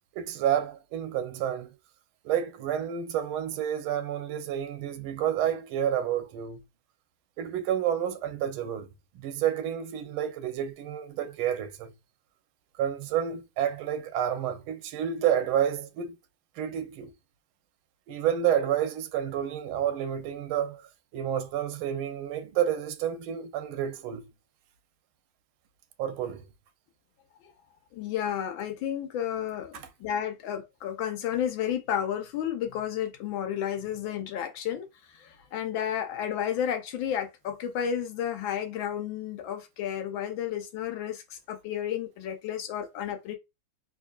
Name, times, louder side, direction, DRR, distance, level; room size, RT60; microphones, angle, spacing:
voice 1, 0.1-1.7 2.2-6.6 7.4-8.9 9.1-11.9 12.8-16.2 16.6-17.1 18.1-24.3 26.0-26.4 29.7-29.9, right 10 dB, 90° right, 1.5 m, -29 dB
voice 2, 27.9-34.9 35.1-43.4, left 9 dB, 80° left, 1.4 m, -32 dB
3.6 x 3.0 x 2.3 m
omnidirectional pair, 2.2 m